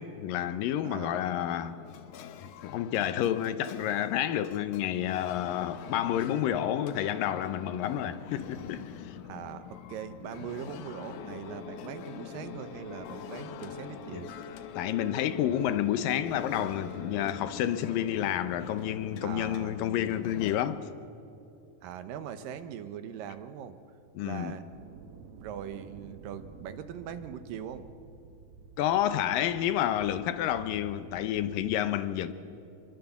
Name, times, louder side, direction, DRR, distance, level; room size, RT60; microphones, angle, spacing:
voice 1, 0.0-1.8 2.4-9.2 14.1-14.2 14.8-20.9 24.2-24.6 28.8-32.3, left 11 dB, 90° left, 2.7 m, -30 dB
voice 2, 0.8-1.3 9.2-14.3 19.2-19.8 21.8-23.8 24.2-24.6 25.4-27.9, right 9 dB, 90° right, 2.8 m, -41 dB
sound 1, 1.2-20.6, left 10 dB, 70° left, 2.2 m, -45 dB
sound 2, 11.2-17.6, left 4 dB, 50° left, 2.6 m, -44 dB
sound 3, 24.7-31.8, right 5 dB, 65° right, 1.6 m, -51 dB
26.0 x 22.5 x 7.2 m
omnidirectional pair, 3.9 m